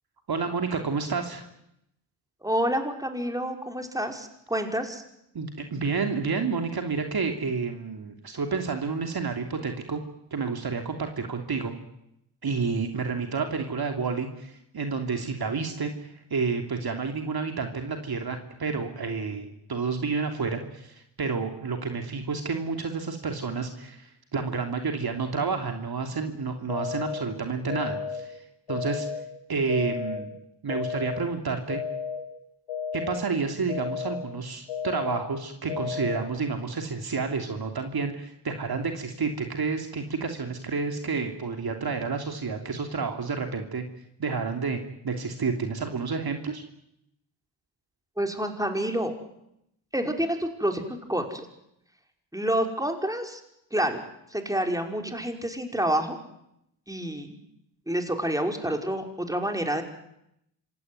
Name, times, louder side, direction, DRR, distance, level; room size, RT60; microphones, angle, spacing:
voice 1, 0.3-1.5 5.3-10.0 10.3-11.7 12.4-28.4 28.7-29.1 29.5-30.3 30.6-31.8 32.9-43.8 44.2-46.6, right 4 dB, 50° right, 4 dB, 3.0 m, -30 dB
voice 2, 2.4-5.0 48.2-49.1 49.9-51.5 52.3-53.4 53.7-54.0 54.3-56.2 56.9-57.4 57.9-59.8, right 1 dB, 5° right, 4 dB, 5.4 m, -28 dB
sound 1, 26.7-27.2 27.7-28.2 28.7-29.2 29.7-30.2 30.7-31.2 31.7-32.2 32.7-33.2 33.7-34.2 34.7-35.2 35.7-36.2, left 6 dB, 85° left, 4.3 m, -32 dB
26.0 x 17.5 x 9.6 m, 0.79 s
supercardioid pair, 45°, 48 cm